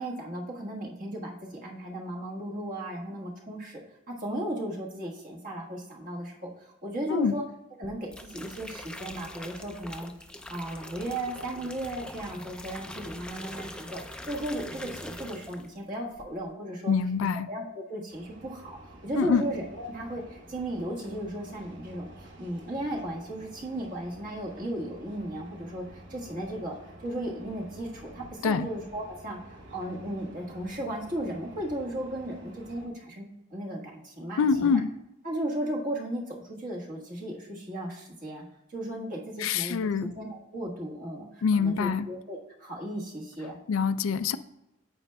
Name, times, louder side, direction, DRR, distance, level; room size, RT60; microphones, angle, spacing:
voice 1, 0.0-7.4 7.8-10.1 10.5-16.9 17.5-22.1 22.4-34.8 35.2-38.4 38.7-43.6, right 1 dB, 40° right, -2 dB, 1.4 m, -35 dB
sound 1, 7.8-15.8 16.1-16.5, left 1 dB, 5° left, 0.3 m, -43 dB
voice 2, 16.9-17.5 19.1-19.4 28.4-28.7 34.4-34.9 39.4-40.1 41.4-42.1 43.7-44.4, left 5 dB, 85° left, 13 dB, 0.4 m, -25 dB
sound 2, 18.1-32.9, right 1 dB, 60° right, 1.1 m, -50 dB
9.0 x 7.5 x 2.2 m, 0.92 s
head